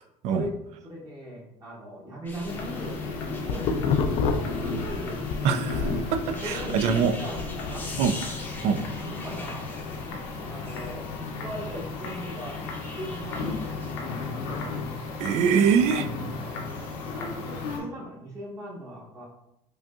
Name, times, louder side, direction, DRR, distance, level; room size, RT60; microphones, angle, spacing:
voice 1, 0.8-5.2 6.3-7.9 8.6-9.7 10.1-14.3 17.1-19.3, equal, 25° right, -4 dB, 1.0 m, -39 dB
sound 1, 2.2-15.7 16.5-17.1 17.6-17.8, left 2 dB, 15° left, 0.7 m, -44 dB
sound 2, 2.5-17.8, left 3 dB, 85° left, 0.8 m, -34 dB
sound 3, 3.0-5.4 5.7-8.1, left 6 dB, 55° left, 0.4 m, -29 dB
voice 2, 5.4-7.1 8.0-8.2 8.6-8.8 15.2-16.1, right 6 dB, 60° right, 9 dB, 0.4 m, -23 dB
5.0 x 2.6 x 2.4 m, 0.83 s
cardioid pair, 125°, 13 cm